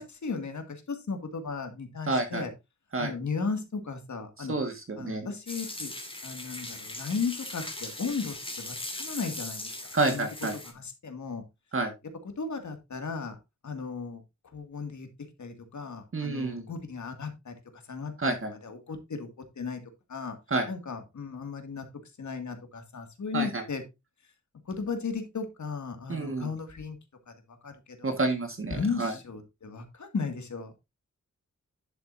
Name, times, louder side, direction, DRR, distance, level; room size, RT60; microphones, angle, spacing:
voice 1, 0.0-2.5 3.0-4.5 5.0-5.9 6.2-10.3 10.7-11.4 12.4-13.4 13.6-14.2 14.5-15.1 15.4-19.3 19.6-19.8 20.1-20.4 20.7-21.8 22.2-23.8 24.7-27.0 27.3-27.4 27.6-28.2 28.7-30.7, left 5 dB, 70° left, 7 dB, 2.2 m, -35 dB
voice 2, 2.1-2.5 2.9-3.1 4.4-5.3 9.9-10.5 11.7-11.9 16.1-16.7 18.2-18.5 20.5-20.7 23.3-23.6 26.1-26.5 28.0-29.1, right 2 dB, 45° right, 6 dB, 1.7 m, -29 dB
sound 1, 5.5-10.7, left 2 dB, 20° left, 2.3 m, -39 dB
10.5 x 7.8 x 2.7 m, 0.23 s
wide cardioid pair, 135°, 30 cm